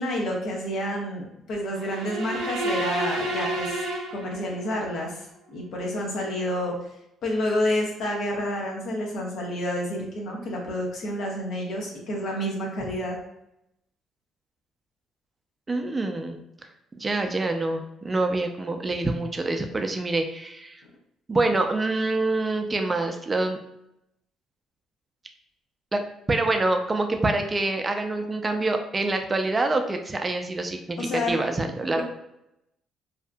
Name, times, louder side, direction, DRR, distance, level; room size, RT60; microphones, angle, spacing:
voice 1, 0.0-3.8 4.1-6.7 7.2-13.2 31.0-31.3 32.0-32.1, left 1 dB, 70° left, -1 dB, 0.8 m, -29 dB
sound 1, 1.8-4.8, right 1 dB, 85° right, 0.5 m, -30 dB
voice 2, 15.7-16.4 17.0-20.8 21.3-23.6 25.9-26.0 26.3-32.0, right 2 dB, 30° right, 5 dB, 0.4 m, -26 dB
2.7 x 2.4 x 2.2 m, 0.84 s
supercardioid pair, 60°, 0 cm